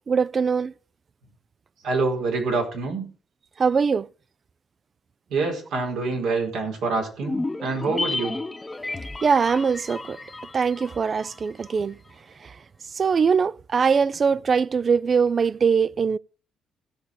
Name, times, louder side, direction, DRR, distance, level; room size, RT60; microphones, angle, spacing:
voice 1, 0.1-0.7 3.6-4.1 9.2-10.2 10.5-12.0 13.0-16.2, right 6 dB, 40° right, 0.4 m, -22 dB
voice 2, 1.8-3.1 5.3-8.4, right 3 dB, 85° right, 4.8 m, -26 dB
sound 1, 7.2-11.7 12.0-12.1, left 2 dB, 20° left, 1.0 m, -32 dB
17.0 x 6.6 x 4.8 m
cardioid pair, 90°, 0 cm